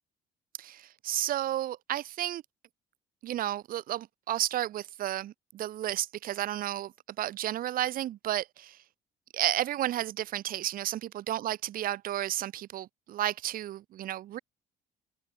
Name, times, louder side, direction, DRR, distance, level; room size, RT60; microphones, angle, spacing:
voice 1, 0.6-2.4 3.2-8.8 9.3-14.4, right 13 dB, 55° right, 0.7 m, -32 dB
open air
cardioid pair, 110°, 17 cm